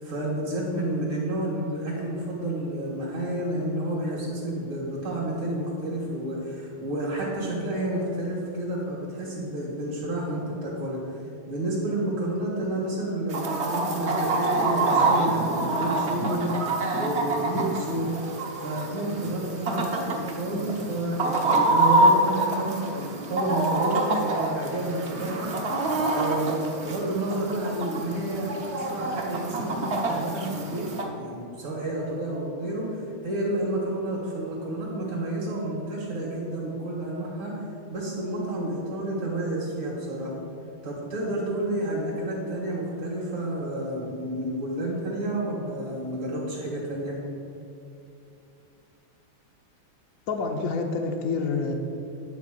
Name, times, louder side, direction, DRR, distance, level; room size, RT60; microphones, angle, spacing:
voice 1, 0.0-11.0 11.5-16.5 16.9-18.1 18.6-25.5 26.1-30.9 31.2-37.5 37.9-40.3 40.8-47.2, right 1 dB, 70° right, -7 dB, 2.5 m, -30 dB
Chicken rooster, 13.3-31.0, right 2 dB, 50° right, 0.8 m, -26 dB
voice 2, 50.3-51.7, left 4 dB, 65° left, 2 dB, 0.8 m, -27 dB
9.9 x 4.3 x 7.6 m, 2.7 s
omnidirectional pair, 2.3 m